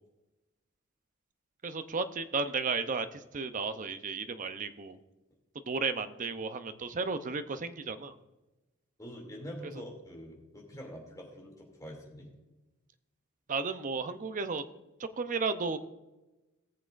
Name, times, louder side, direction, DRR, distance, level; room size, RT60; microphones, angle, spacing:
voice 1, 1.6-5.0 5.7-8.1 13.5-14.6 15.0-15.8, right 4 dB, 40° right, 10 dB, 0.6 m, -33 dB
voice 2, 9.0-12.3, equal, 15° left, -1 dB, 2.6 m, -45 dB
18.0 x 7.3 x 2.5 m, 1.0 s
head